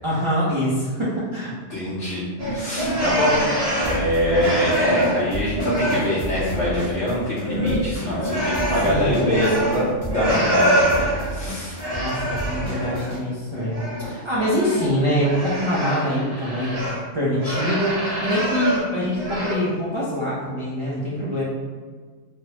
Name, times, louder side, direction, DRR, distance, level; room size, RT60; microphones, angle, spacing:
voice 1, 0.0-1.5 8.8-9.2 11.9-21.4, equal, 50° right, -8 dB, 0.3 m, -24 dB
voice 2, 1.7-11.8 12.3-12.4, left 1 dB, 70° left, -10 dB, 1.0 m, -24 dB
sound 1, 2.4-5.3 5.5-6.9 7.2-11.3 11.8-13.2 13.5-17.0 17.4-18.9 19.1-19.5, right 1 dB, 35° right, 0.8 m, -25 dB
Drum kit / Drum, 3.8-7.4 7.7-13.2, right 1 dB, 30° left, 0.6 m, -32 dB
3.3 x 2.0 x 2.8 m, 1.5 s
omnidirectional pair, 1.3 m